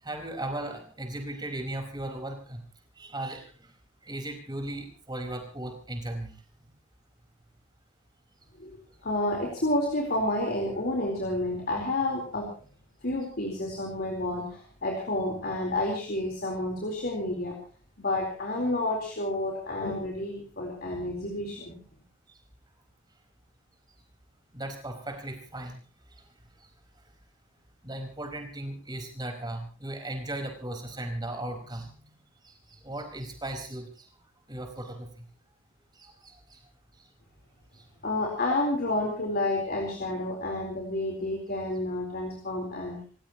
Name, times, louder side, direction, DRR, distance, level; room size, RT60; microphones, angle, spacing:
voice 1, 0.0-2.6 3.0-3.7 4.0-6.3 24.5-25.8 26.1-26.2 27.8-32.1 32.4-34.1 34.5-35.2 36.0-36.6 37.7-37.8, right 1 dB, 20° right, 4 dB, 5.0 m, -37 dB
voice 2, 9.0-12.5 13.0-17.6 18.0-21.7 38.0-43.0, left 1 dB, 45° left, 0 dB, 4.2 m, -30 dB
28.0 x 16.5 x 3.1 m, 0.41 s
head